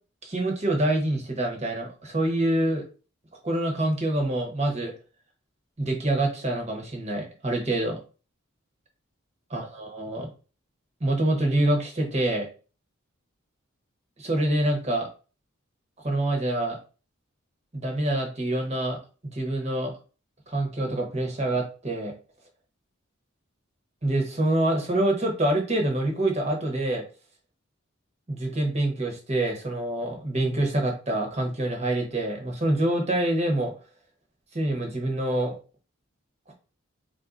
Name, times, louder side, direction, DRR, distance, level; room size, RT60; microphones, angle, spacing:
voice 1, 0.2-2.8 3.4-4.9 5.8-8.0 9.5-10.3 11.0-12.5 14.2-15.1 16.0-16.8 17.7-19.0 19.3-19.9 20.5-22.1 24.0-27.0 28.3-33.7 34.5-35.6, right 1 dB, 30° right, 2 dB, 1.1 m, -26 dB
3.8 x 2.7 x 3.7 m, 0.35 s
head